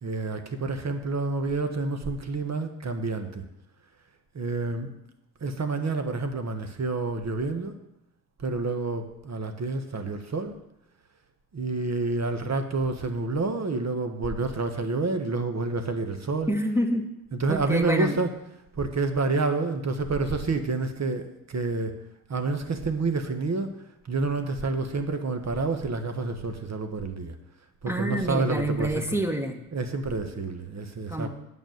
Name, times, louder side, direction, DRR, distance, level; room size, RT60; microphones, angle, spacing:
voice 1, 0.0-3.4 4.3-4.9 5.4-7.8 8.4-10.6 11.5-16.5 17.4-18.3 18.8-21.9 22.3-23.7 24.0-27.3 27.8-29.2 29.7-31.3, right 3 dB, 40° right, 7 dB, 1.5 m, -28 dB
voice 2, 16.5-17.1 17.5-18.2 27.9-29.6 31.1-31.3, equal, 5° right, 5 dB, 1.6 m, -27 dB
8.9 x 5.6 x 7.8 m, 0.87 s
hypercardioid pair, 50°, 43 cm